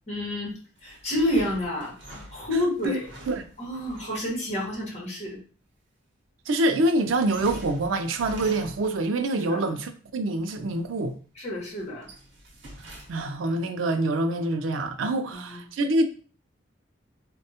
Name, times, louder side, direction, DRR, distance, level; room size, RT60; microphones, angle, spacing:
voice 1, 0.1-3.1 3.6-5.4 9.4-9.7 11.3-12.1 15.3-15.6, left 1 dB, 35° left, 1.2 m, -29 dB
sound 1, 0.8-4.3 7.0-9.1 10.5-11.1 11.6-13.5, equal, 65° right, 0.8 m, -45 dB
voice 2, 6.5-11.2 12.8-16.0, right 2 dB, 85° right, 0.4 m, -26 dB
3.4 x 2.2 x 2.7 m
head